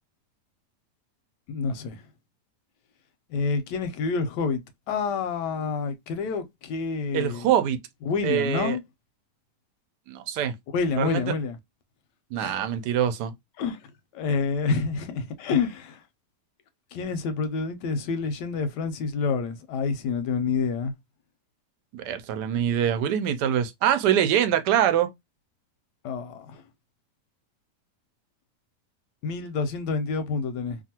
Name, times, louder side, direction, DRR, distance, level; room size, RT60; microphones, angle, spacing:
voice 1, 1.5-2.0 3.3-4.6 4.9-7.5 8.1-8.8 10.7-11.6 12.4-12.5 13.6-13.8 14.1-16.0 16.9-20.9 26.0-26.6 29.2-30.8, left 5 dB, 90° left, 1.2 m, -28 dB
voice 2, 7.1-7.8 8.2-8.8 10.1-10.6 11.0-11.2 12.3-13.3 21.9-25.1, right 10 dB, 85° right, 1.2 m, -24 dB
2.9 x 2.4 x 2.7 m
omnidirectional pair, 1.8 m